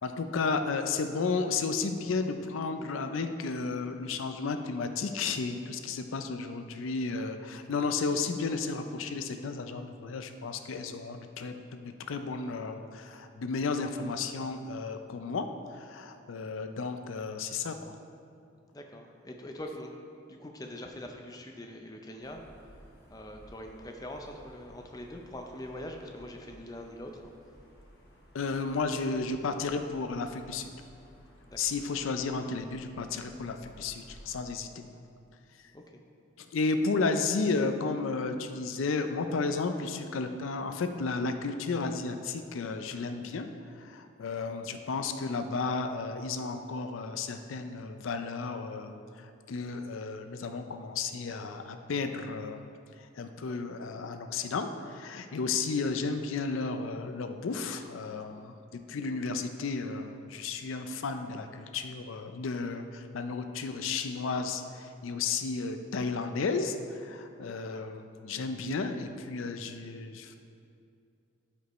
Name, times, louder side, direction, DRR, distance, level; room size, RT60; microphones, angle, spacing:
voice 1, 0.0-17.9 28.3-30.7 31.6-34.8 36.4-43.5 43.7-52.7 53.0-70.4, left 4 dB, 85° left, 7 dB, 0.5 m, -33 dB
voice 2, 18.7-19.9 20.3-22.7 23.1-27.3 31.5-31.6 35.7-36.0, left 1 dB, 20° left, 2 dB, 0.5 m, -43 dB
sound 1, 22.2-34.4, equal, 50° left, 1.5 m, -56 dB
12.5 x 5.2 x 3.1 m, 2.4 s
head